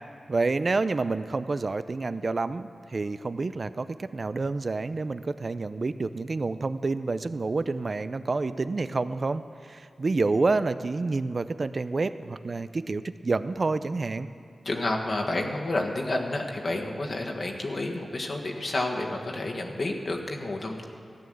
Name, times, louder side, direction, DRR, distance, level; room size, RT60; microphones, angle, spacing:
voice 1, 0.3-9.4 9.7-14.3, right 3 dB, 45° right, 13 dB, 0.4 m, -28 dB
voice 2, 14.6-20.8, left 2 dB, 50° left, 1 dB, 1.5 m, -30 dB
14.0 x 9.3 x 7.8 m, 2.3 s
wide cardioid pair, 90°, 0 cm